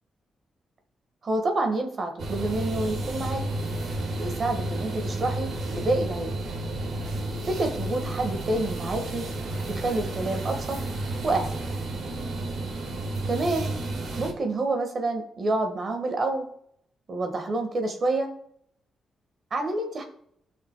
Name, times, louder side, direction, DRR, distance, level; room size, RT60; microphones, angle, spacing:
voice 1, 1.2-3.4 4.2-6.4 7.4-9.3 9.7-10.8 11.2-11.5 13.2-13.7 14.2-16.5 17.1-18.3 19.5-20.0, right 2 dB, 45° right, 4 dB, 1.5 m, -28 dB
sound 1, 2.2-14.3, right 2 dB, 70° right, 1.9 m, -31 dB
16.5 x 5.9 x 2.2 m, 0.70 s
cardioid pair, 125°, 0 cm